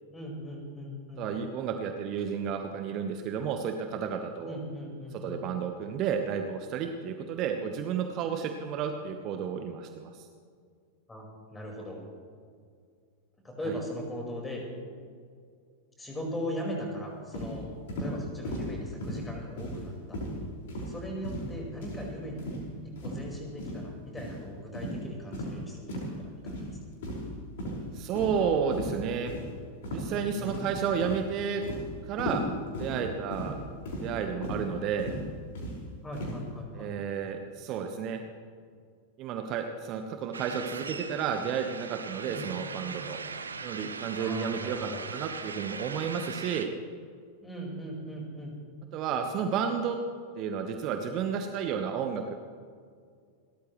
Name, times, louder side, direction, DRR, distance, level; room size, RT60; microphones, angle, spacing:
voice 1, 0.1-1.3 4.4-5.4 11.1-12.0 13.4-14.6 16.0-20.2 20.9-22.4 22.8-25.9 26.2-26.7 30.1-30.8 36.0-36.9 42.3-43.0 44.2-45.0 47.4-48.6, equal, 10° left, -1 dB, 4.9 m, -39 dB
voice 2, 1.2-4.6 5.2-10.3 13.7-13.8 27.9-29.3 29.9-31.6 32.1-32.5 32.8-33.6 34.0-35.1 36.7-38.2 39.2-43.2 43.6-46.7 48.9-50.0 50.3-52.3, right 7 dB, 40° right, 6 dB, 1.2 m, -32 dB
sound 1, 17.3-17.5 17.9-18.1 18.4-18.7 19.0-19.2 19.6-19.9 20.1-20.3 20.7-20.9 21.2-21.5 21.8-22.0 22.4-22.6 23.0-23.2 23.6-23.8 24.2-24.3 24.7-25.0 25.3-25.5 25.9-26.1 26.5-26.7 27.0-27.3 27.6-27.8 28.2-28.4 28.7-28.9 29.3-29.4 29.8-30.1 30.5-30.8 31.0-31.2 31.6-31.8 32.2-32.4 32.7-32.9 33.3-33.5 33.9-34.1 34.4-34.6 35.0-35.2 35.5-35.7 36.1-36.4, equal, 55° left, 5.3 m, -35 dB
sound 2, 40.3-46.7, right 5 dB, 75° right, 0.9 m, -40 dB
29.0 x 13.5 x 3.2 m, 2.1 s
figure-of-eight pair, 90°, 0 cm